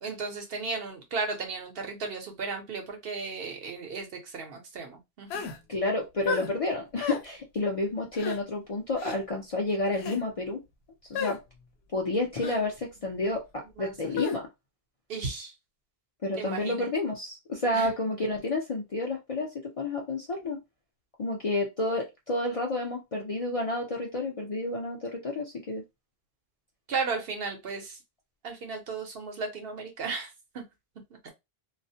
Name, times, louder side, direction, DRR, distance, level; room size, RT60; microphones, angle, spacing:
voice 1, 0.0-5.5 13.8-13.9 15.1-15.5 16.3-16.9 17.7-17.9 26.9-28.0 28.4-30.6 31.2-31.3, right 4 dB, 70° right, 0.9 m, -35 dB
sound 1, 5.3-5.6 6.3-6.5 7.0-7.2 8.2-8.4 9.0-9.2 9.9-10.2 11.1-11.4 12.4-12.6 14.2-14.4, left 6 dB, 90° left, 0.8 m, -32 dB
voice 2, 5.7-10.6 11.1-11.4 11.9-14.5 16.2-20.6 21.2-25.8, left 2 dB, 45° left, 0.5 m, -30 dB
2.3 x 2.1 x 2.6 m
omnidirectional pair, 1.0 m